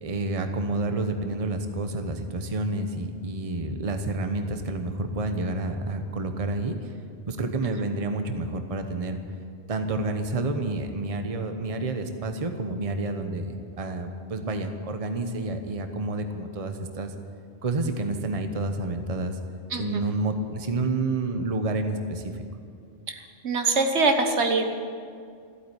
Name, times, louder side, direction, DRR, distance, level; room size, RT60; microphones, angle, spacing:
voice 1, 0.0-6.9 7.3-9.2 9.7-17.1 17.6-19.4 19.8-22.4, right 2 dB, 35° right, 7 dB, 1.0 m, -29 dB
voice 2, 19.7-20.0 23.1-23.2 23.4-24.6, right 3 dB, 80° right, 5 dB, 1.6 m, -23 dB
14.5 x 8.6 x 9.7 m, 2.3 s
omnidirectional pair, 1.1 m